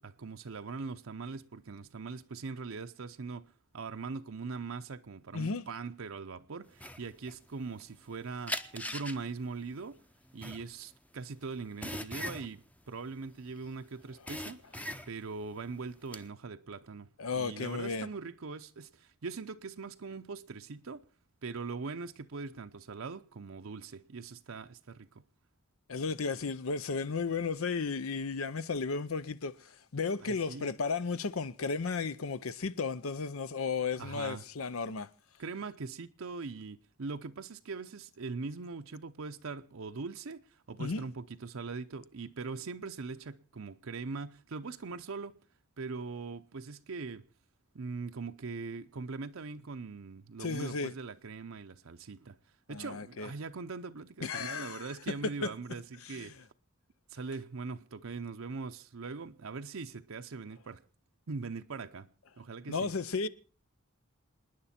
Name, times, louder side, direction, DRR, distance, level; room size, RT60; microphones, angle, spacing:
voice 1, 0.0-3.5 3.7-10.0 10.3-14.6 15.1-21.0 21.4-25.2 30.2-30.8 34.0-34.4 35.4-45.4 45.8-47.3 47.7-52.4 52.7-56.4 57.1-60.8 61.3-62.1 62.4-62.9, right 4 dB, 70° right, 0.7 m, -41 dB
sound 1, 6.8-8.1 8.5-13.7 14.0-15.4 15.8-16.2, left 1 dB, 5° left, 0.7 m, -40 dB
voice 2, 17.2-18.1 25.9-35.1 40.8-41.0 50.4-50.9 52.7-53.3 54.2-54.9 55.4-55.5 56.1-56.3 62.7-63.3, left 4 dB, 75° left, 0.7 m, -34 dB
27.5 x 10.0 x 4.3 m
head